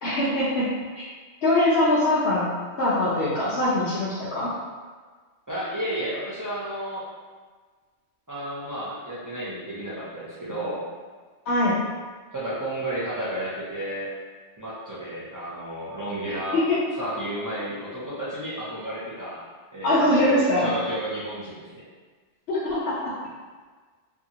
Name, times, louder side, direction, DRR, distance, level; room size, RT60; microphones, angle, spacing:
voice 1, 0.0-0.7 1.4-2.5 2.8-4.5 11.4-11.8 16.5-16.8 19.8-20.7 22.5-23.0, left 1 dB, 65° left, -10 dB, 0.9 m, -22 dB
voice 2, 5.5-7.0 8.3-10.8 12.3-14.1 14.6-16.6 17.0-19.4 19.7-21.8, right 1 dB, 30° right, -10 dB, 0.3 m, -32 dB
2.8 x 2.4 x 2.8 m, 1.5 s
omnidirectional pair, 1.2 m